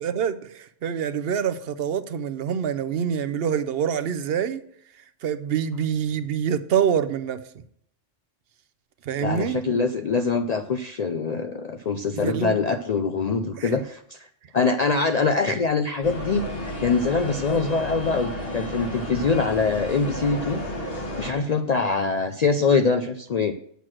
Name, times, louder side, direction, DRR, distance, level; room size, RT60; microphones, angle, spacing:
voice 1, 0.0-4.6 5.2-7.6 9.0-9.6 12.2-12.6 13.6-13.7, right 8 dB, 60° right, 12 dB, 0.8 m, -26 dB
voice 2, 9.2-14.3 14.5-20.6 21.2-23.5, left 4 dB, 65° left, 7 dB, 0.4 m, -24 dB
sound 1, 16.0-21.3, left 1 dB, 50° left, 1.7 m, -32 dB
8.2 x 6.2 x 6.1 m, 0.67 s
omnidirectional pair, 1.3 m